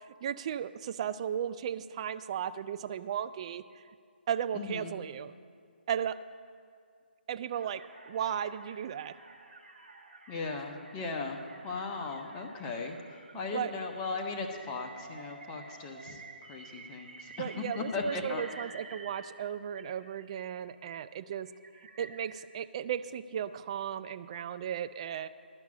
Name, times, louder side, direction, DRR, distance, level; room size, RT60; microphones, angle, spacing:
voice 1, 0.2-3.6 4.3-5.3 5.9-6.2 7.3-9.2 13.5-13.7 17.4-21.5 22.0-25.3, right 9 dB, 35° right, 13 dB, 0.3 m, -35 dB
voice 2, 4.5-4.9 10.3-16.2 16.5-18.4, left 4 dB, 20° left, 2 dB, 0.9 m, -37 dB
sound 1, 7.5-19.5 19.7-20.7 21.3-22.4, right 3 dB, 55° right, 1.7 m, -51 dB
11.5 x 6.0 x 8.4 m, 2.2 s
figure-of-eight pair, 145°, 6 cm